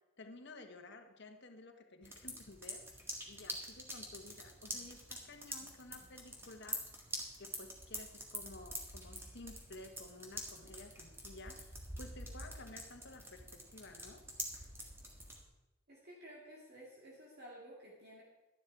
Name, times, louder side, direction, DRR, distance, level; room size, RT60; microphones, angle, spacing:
voice 1, 0.2-6.8 7.4-14.2, left 2 dB, 55° left, 6 dB, 1.3 m, -53 dB
sound 1, 2.0-15.4, right 1 dB, 10° right, 1.7 m, -46 dB
voice 2, 15.9-18.2, equal, 50° right, -4 dB, 2.3 m, -53 dB
12.5 x 10.5 x 4.7 m, 1.0 s
head